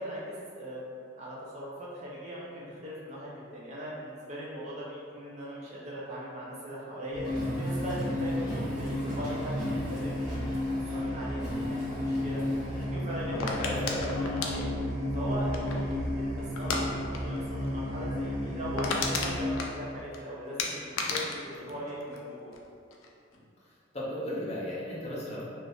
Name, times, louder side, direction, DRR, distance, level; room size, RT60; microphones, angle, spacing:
voice 1, 0.0-7.3 7.6-12.4 12.8-13.4 14.2-14.7 15.1-16.3 16.6-22.5, equal, 35° right, -6 dB, 0.5 m, -40 dB
sound 1, 7.1-19.6, left 1 dB, 85° right, 0.7 m, -33 dB
Car, 7.2-12.9, equal, 5° right, 1.0 m, -40 dB
voice 2, 13.3-14.4 15.6-15.7 21.6-21.7 23.9-25.4, left 1 dB, 30° left, -7 dB, 0.5 m, -35 dB
sound 2, 13.4-16.0 16.6-16.8 17.1-17.4 17.6-17.7 18.1-18.2 18.5-20.2 20.6-22.6 22.9-23.4, left 4 dB, 85° left, 0.4 m, -33 dB
2.6 x 2.4 x 3.4 m, 2.3 s
head